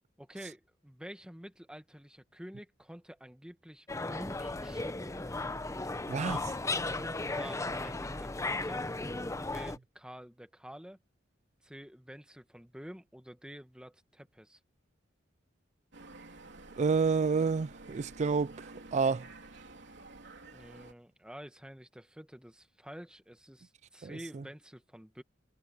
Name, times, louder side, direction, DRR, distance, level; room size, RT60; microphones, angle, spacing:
voice 1, 0.2-5.2 6.2-6.5 6.8-8.8 9.5-11.0 11.6-14.6 20.4-25.2, equal, 5° right, 1.6 m, -49 dB
sound 1, 3.9-9.8, left 2 dB, 15° left, 0.7 m, -35 dB
sound 2, 15.9-20.9, right 2 dB, 65° right, 3.9 m, -51 dB
voice 2, 16.8-18.5 18.9-19.2 24.0-24.1, right 5 dB, 40° right, 0.3 m, -28 dB
head